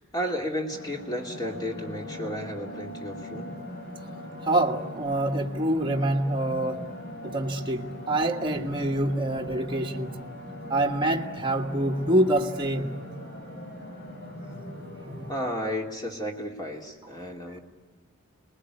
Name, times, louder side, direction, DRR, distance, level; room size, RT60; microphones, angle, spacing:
voice 1, 0.0-3.6 15.3-17.6, equal, 20° left, 2.9 m, -33 dB
sound 1, 0.7-15.4, equal, 55° left, 6.9 m, -40 dB
voice 2, 4.4-6.9 7.2-10.2 10.7-12.9, right 1 dB, 25° right, 1.5 m, -26 dB
29.0 x 21.0 x 9.8 m
head